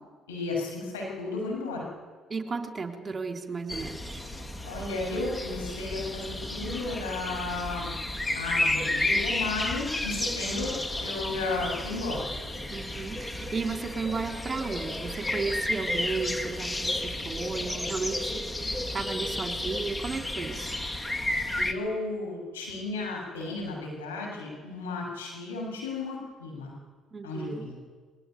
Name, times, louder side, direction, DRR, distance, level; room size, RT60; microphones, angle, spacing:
voice 1, 0.3-1.9 4.6-7.9 8.3-12.2 21.6-26.7 27.2-27.8, left 3 dB, 85° left, -1 dB, 7.1 m, -34 dB
voice 2, 2.3-4.2 12.7-20.8 27.1-27.6, right 4 dB, 30° right, 3 dB, 3.8 m, -34 dB
sound 1, 3.7-21.7, left 1 dB, 15° left, 2.1 m, -32 dB
22.0 x 18.0 x 9.5 m, 1.4 s
hypercardioid pair, 55°, 0 cm